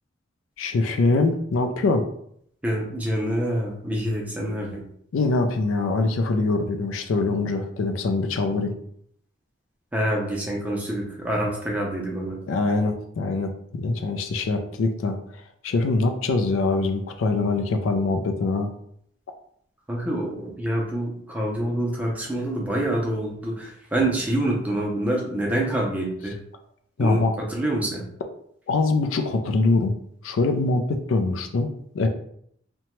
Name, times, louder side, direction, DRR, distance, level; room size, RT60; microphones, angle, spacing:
voice 1, 0.6-2.1 5.1-8.7 12.5-15.2 15.6-18.7 27.0-27.3 28.7-29.9 30.2-32.1, left 3 dB, 80° left, 6 dB, 0.4 m, -23 dB
voice 2, 2.6-4.8 9.9-12.4 19.9-26.4 27.0-28.0, right 1 dB, 5° right, -2 dB, 0.5 m, -26 dB
2.8 x 2.2 x 3.0 m, 0.68 s
head